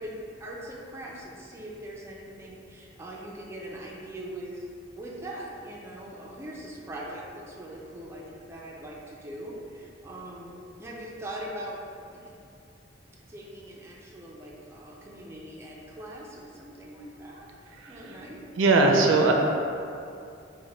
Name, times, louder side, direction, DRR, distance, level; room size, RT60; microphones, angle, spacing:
voice 1, 0.0-4.7 4.9-11.8 12.1-12.4 13.3-17.5 17.9-18.4, right 1 dB, 15° right, -4 dB, 0.3 m, -41 dB
voice 2, 17.8-18.1 18.6-19.3, right 3 dB, 80° right, 1 dB, 0.4 m, -20 dB
3.1 x 2.1 x 3.8 m, 2.5 s
head